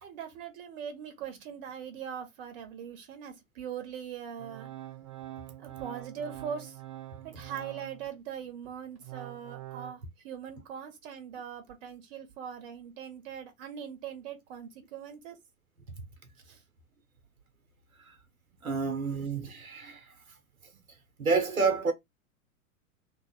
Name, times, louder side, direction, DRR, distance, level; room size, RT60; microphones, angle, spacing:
voice 1, 0.0-4.7 5.6-6.8 7.2-15.4 16.5-16.6, right 8 dB, 40° right, 1.1 m, -41 dB
Organ, 4.4-8.2 8.6-9.9, right 15 dB, 25° right, 0.5 m, -45 dB
voice 2, 18.6-20.1 21.2-21.9, right 4 dB, 75° right, 1.1 m, -29 dB
3.0 x 2.4 x 4.0 m
figure-of-eight pair, 100°, 43 cm